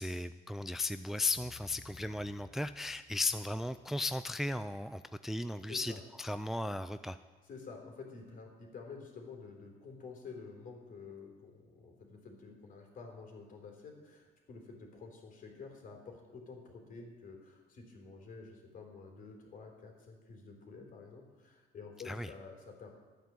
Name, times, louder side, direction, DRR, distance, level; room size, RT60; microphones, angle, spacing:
voice 1, 0.0-5.9 6.2-7.2 22.1-22.3, left 2 dB, ahead, 11 dB, 0.3 m, -36 dB
sound 1, 1.4-5.8, left 5 dB, 25° left, 1.5 m, -59 dB
voice 2, 5.7-6.0 7.4-22.9, left 4 dB, 55° left, 2 dB, 3.7 m, -50 dB
13.0 x 9.2 x 7.6 m, 1.3 s
cardioid pair, 110°, 17 cm